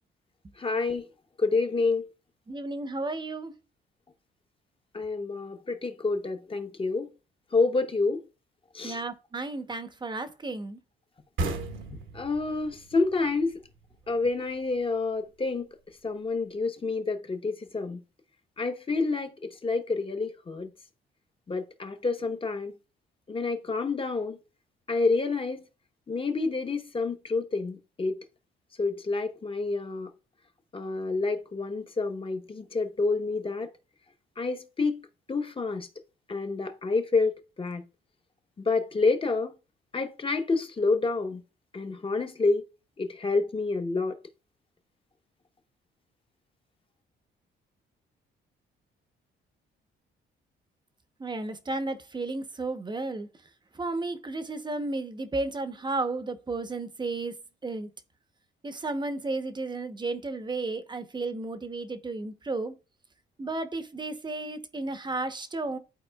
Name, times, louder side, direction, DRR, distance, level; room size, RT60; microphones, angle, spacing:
voice 1, 0.6-1.1 1.4-2.1 4.9-7.1 7.5-8.2 8.7-9.0 12.1-13.6 14.1-15.7 16.0-18.0 18.6-19.3 19.6-20.7 21.5-22.7 23.3-24.4 24.9-25.6 26.1-28.2 28.8-30.1 30.7-33.7 34.4-35.0 35.3-35.9 36.3-37.8 38.6-39.5 39.9-41.4 41.7-42.6 43.0-44.2, left 3 dB, 25° left, 0.9 m, -28 dB
voice 2, 2.5-3.5 8.8-10.8 51.2-53.3 53.8-57.4 57.6-57.9 58.6-62.7 63.4-65.8, right 2 dB, 20° right, 0.8 m, -33 dB
sound 1, 11.4-14.8, right 2 dB, 75° right, 1.1 m, -36 dB
11.5 x 4.2 x 2.3 m
cardioid pair, 90°, 20 cm